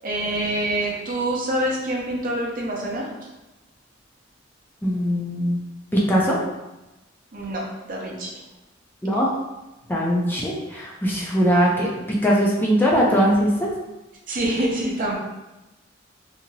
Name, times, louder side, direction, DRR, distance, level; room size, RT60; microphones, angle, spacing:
voice 1, 0.0-3.3 7.3-8.4 14.3-15.2, right 1 dB, 45° right, -2 dB, 0.6 m, -26 dB
voice 2, 4.8-5.6 5.9-6.4 9.0-9.3 9.9-11.9 12.2-13.7, equal, 10° left, -4 dB, 0.4 m, -20 dB
2.8 x 2.6 x 2.7 m, 1.0 s
head